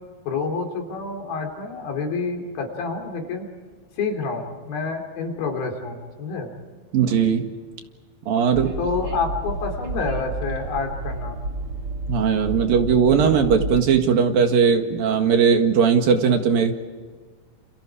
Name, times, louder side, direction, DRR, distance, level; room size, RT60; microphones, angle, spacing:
voice 1, 0.3-3.5 4.0-6.5 8.8-11.4, left 4 dB, 70° left, 3 dB, 5.0 m, -28 dB
voice 2, 6.9-7.5 8.3-8.8 12.1-16.8, right 6 dB, 65° right, 5 dB, 3.4 m, -19 dB
Train, 8.5-13.9, right 2 dB, 40° right, 2.6 m, -30 dB
29.5 x 29.5 x 4.9 m, 1.5 s
omnidirectional pair, 4.5 m